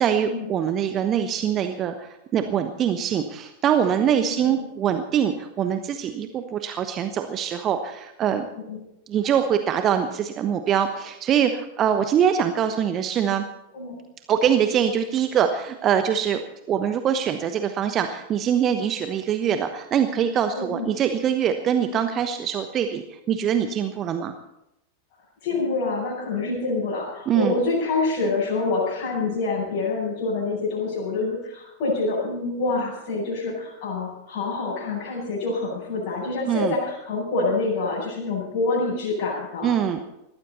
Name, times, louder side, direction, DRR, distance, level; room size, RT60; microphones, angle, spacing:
voice 1, 0.0-8.5 9.1-13.4 14.3-16.4 16.7-24.3 27.3-27.5 36.5-36.8 39.6-40.0, right 8 dB, 30° right, 8 dB, 1.1 m, -23 dB
voice 2, 4.2-4.7 8.7-8.8 13.7-14.0 20.5-20.9 25.4-39.7, left 3 dB, 45° left, -8 dB, 7.4 m, -26 dB
20.0 x 15.0 x 4.2 m, 0.85 s
figure-of-eight pair, 90°, 0 cm